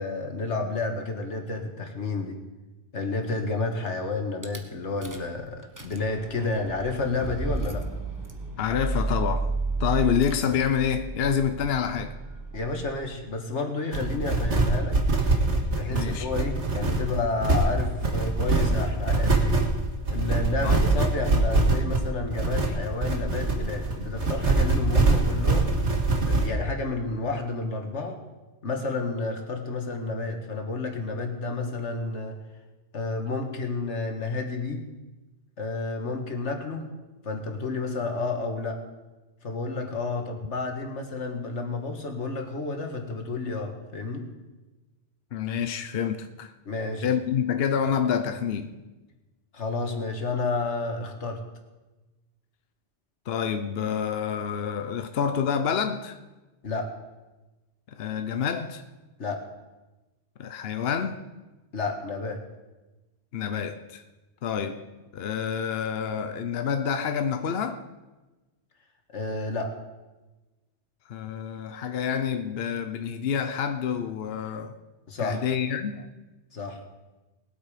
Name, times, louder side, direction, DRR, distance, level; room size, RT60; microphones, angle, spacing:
voice 1, 0.0-2.4 2.9-7.8 12.5-15.0 15.7-19.6 20.1-25.7 26.3-28.2 28.6-32.4 32.9-34.8 35.6-36.9 37.2-38.8 39.4-44.2 46.7-47.1 49.5-51.4 56.6-56.9 59.2-59.4 61.7-62.4 69.1-69.7 75.1-75.4 76.5-76.8, left 3 dB, 90° left, 4 dB, 1.9 m, -30 dB
Rattle / Car / Engine starting, 4.4-4.6 5.0-5.4 5.6-13.4, right 2 dB, 15° right, 1.1 m, -32 dB
voice 2, 8.6-9.5 9.8-12.2 15.9-16.3 20.6-20.8 45.3-46.5 47.0-48.8 53.3-56.2 57.9-58.8 60.4-61.2 63.3-64.0 64.4-64.8 65.1-67.8 71.1-74.8 75.2-76.1, left 7 dB, 65° left, 8 dB, 0.9 m, -28 dB
sound 1, 13.9-26.5, right 3 dB, 85° right, 2.1 m, -23 dB
20.5 x 8.1 x 5.0 m, 1.2 s
omnidirectional pair, 1.2 m